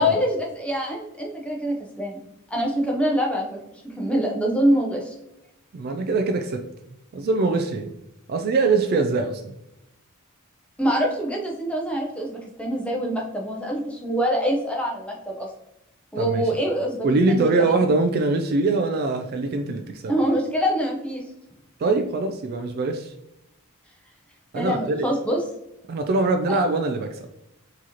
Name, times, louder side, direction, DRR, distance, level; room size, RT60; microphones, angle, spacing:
voice 1, 0.0-2.2 2.5-3.6 3.8-5.1 10.8-15.5 16.1-17.7 20.1-21.2 24.5-25.4 26.5-26.6, equal, 5° left, -1 dB, 0.7 m, -25 dB
voice 2, 5.7-6.6 7.1-7.9 8.3-9.5 16.2-16.4 17.0-20.1 21.8-23.1 24.5-25.1 25.9-27.2, right 3 dB, 45° right, 6 dB, 0.3 m, -23 dB
4.6 x 3.0 x 2.8 m, 0.86 s
head